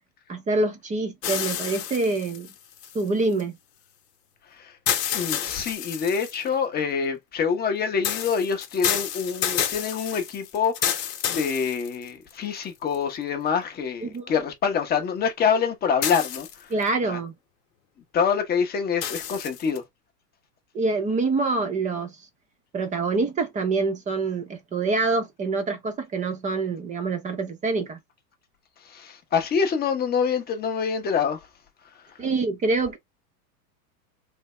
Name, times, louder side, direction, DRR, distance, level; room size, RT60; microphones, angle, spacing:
voice 1, 0.3-2.5 2.9-3.6 14.0-14.4 16.7-17.3 20.7-22.2 22.7-28.0 32.2-33.0, right 3 dB, 15° right, 0.6 m, -26 dB
sound 1, 1.2-3.4 4.9-6.5 8.0-12.3 12.9-13.0 16.0-16.8 19.0-19.8, left 9 dB, 75° left, 1.0 m, -29 dB
voice 2, 5.1-16.7 17.1-17.2 18.1-19.8 28.8-31.5, left 6 dB, 20° left, 0.8 m, -26 dB
3.5 x 2.1 x 3.1 m
hypercardioid pair, 120°, 48 cm